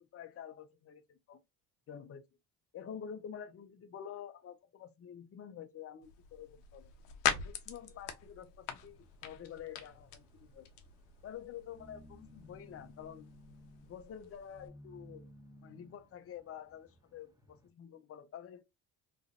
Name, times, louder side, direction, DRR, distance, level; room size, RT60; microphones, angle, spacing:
voice 1, 0.0-1.4 1.9-2.2 2.7-6.9 7.4-10.7 11.2-13.3 13.8-15.3 15.6-18.6, left 9 dB, 35° left, 0.6 m, -48 dB
sound 1, 6.0-14.7, left 9 dB, 80° left, 0.7 m, -42 dB
sound 2, 8.7-17.7, left 1 dB, 10° right, 1.1 m, -59 dB
3.1 x 2.5 x 2.6 m
supercardioid pair, 65°, 41 cm